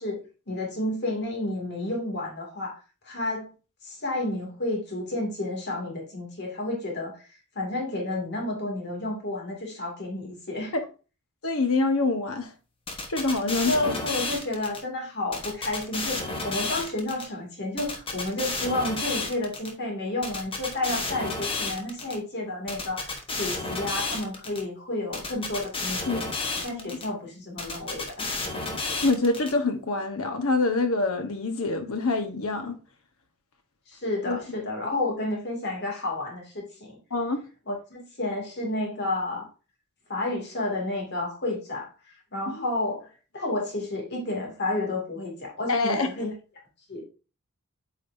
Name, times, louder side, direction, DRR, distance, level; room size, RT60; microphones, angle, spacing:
voice 1, 0.0-3.5 3.8-7.2 7.5-10.7 13.7-26.3 26.6-28.4 33.9-37.0 37.7-39.5 40.1-41.9 42.3-46.3 46.9-47.0, left 2 dB, 50° left, 2.3 m, -31 dB
voice 2, 11.4-12.5 13.1-14.0 26.1-26.2 26.7-27.0 29.0-32.8 34.3-34.7 37.1-37.4 42.5-42.6 45.7-46.1, left 3 dB, 70° left, 1.1 m, -26 dB
sound 1, 12.9-14.8 15.3-17.2 17.8-19.7 20.2-22.2 22.7-24.6 25.1-27.1 27.6-29.5, left 3 dB, 25° left, 1.1 m, -31 dB
8.3 x 5.0 x 2.6 m
head